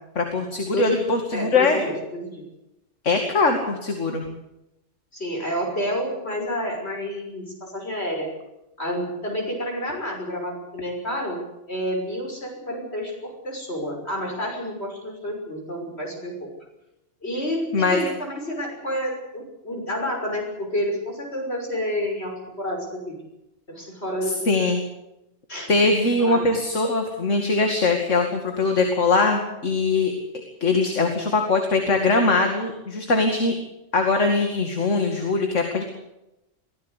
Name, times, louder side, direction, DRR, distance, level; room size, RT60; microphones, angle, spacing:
voice 1, 0.2-1.8 3.0-4.3 17.4-17.5 17.7-18.0 24.2-24.8 25.7-30.1 30.6-33.5 33.9-35.8, left 3 dB, 70° left, 4 dB, 2.7 m, -21 dB
voice 2, 0.7-1.0 1.3-2.4 5.1-8.3 8.8-11.4 11.7-16.5 17.2-23.2 23.7-24.4 25.5-26.5, equal, 55° left, 1 dB, 6.7 m, -29 dB
23.5 x 16.0 x 8.3 m, 0.91 s
omnidirectional pair, 1.3 m